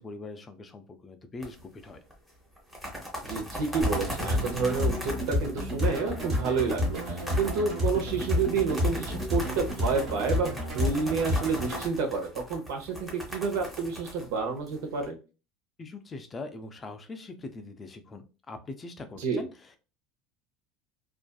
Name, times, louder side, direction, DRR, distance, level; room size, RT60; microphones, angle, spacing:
voice 1, 0.0-2.0 15.8-19.5, left 3 dB, 15° left, 7 dB, 0.3 m, -42 dB
sound 1, 1.4-1.9 2.1-2.2 2.6-15.0, equal, 5° right, 0.7 m, -39 dB
voice 2, 3.2-15.2 19.2-19.4, right 4 dB, 80° right, 4 dB, 0.8 m, -29 dB
sound 2, 3.8-11.8, left 1 dB, 35° right, 1.0 m, -30 dB
2.6 x 2.3 x 2.2 m, 0.32 s
cardioid pair, 165°, 0 cm